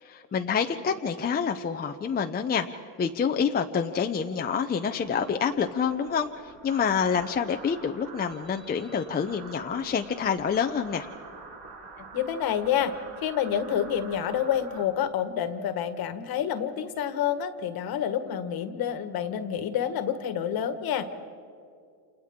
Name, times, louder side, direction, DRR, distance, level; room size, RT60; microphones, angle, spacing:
voice 1, 0.0-11.1, left 6 dB, 20° left, 5 dB, 0.7 m, -27 dB
sound 1, 4.9-14.8, right 4 dB, 60° right, 6.2 m, -47 dB
voice 2, 12.0-12.9 13.2-21.2, left 9 dB, 50° left, 9 dB, 1.6 m, -28 dB
29.0 x 28.5 x 3.7 m, 2.4 s
cardioid pair, 120°, 46 cm